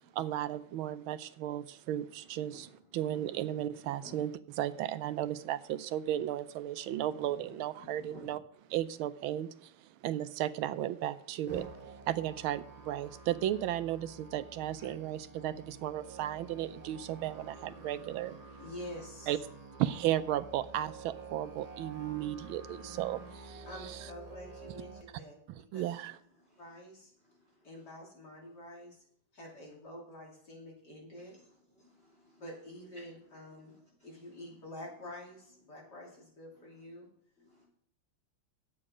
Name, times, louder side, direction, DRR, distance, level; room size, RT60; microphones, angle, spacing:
voice 1, 0.1-8.4 8.7-9.7 10.0-11.7 12.1-18.4 19.3-19.4 19.8-23.7 25.5-26.1, right 12 dB, 80° right, 1.4 m, -35 dB
voice 2, 2.9-3.6 3.9-4.2 7.8-8.3 26.4-26.6 27.2-27.3 31.2-31.5 31.7-32.4 34.0-34.1 37.4-37.6, left 2 dB, 25° left, 3.3 m, -56 dB
Musical instrument, 11.5-25.0, right 3 dB, 50° right, 0.4 m, -49 dB
voice 3, 18.6-19.3 23.7-25.4 25.7-25.9 26.6-27.1 27.6-29.0 29.3-31.4 32.4-33.8 34.0-37.1, left 1 dB, 50° left, 3.4 m, -47 dB
11.0 x 8.7 x 5.0 m
omnidirectional pair, 2.3 m